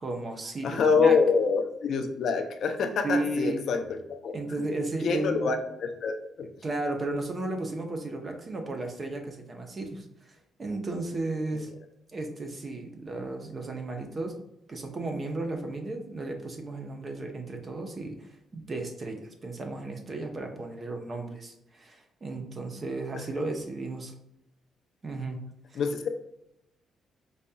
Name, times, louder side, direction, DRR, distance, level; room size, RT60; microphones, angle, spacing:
voice 1, 0.0-1.2 3.0-3.6 4.3-5.5 6.6-11.7 12.1-14.4 14.7-24.1 25.0-25.4 25.7-25.8, right 2 dB, 35° right, 3 dB, 0.8 m, -34 dB
voice 2, 0.6-3.8 4.1-4.8 5.0-6.5 11.5-11.6 23.1-23.2 25.7-26.1, left 5 dB, 65° left, 6 dB, 0.5 m, -26 dB
5.0 x 2.8 x 2.3 m, 0.82 s
cardioid pair, 90°, 0 cm